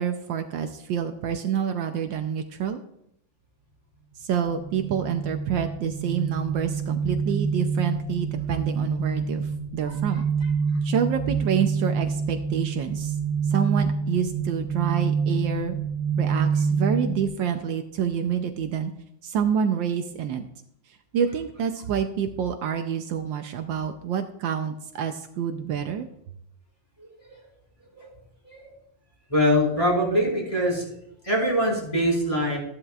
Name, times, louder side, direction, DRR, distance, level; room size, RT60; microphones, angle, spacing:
voice 1, 0.0-2.8 4.2-10.2 10.8-13.2 13.5-15.8 16.2-18.9 19.2-20.4 21.1-26.1, right 8 dB, 75° right, 7 dB, 1.4 m, -27 dB
sound 1, 4.5-17.3, right 5 dB, 50° left, 5.3 m, -27 dB
voice 2, 27.0-27.3 27.9-28.1 28.4-28.7 29.3-30.9 31.2-32.6, equal, 15° left, -4 dB, 4.4 m, -24 dB
14.0 x 11.0 x 2.4 m, 0.75 s
omnidirectional pair, 2.1 m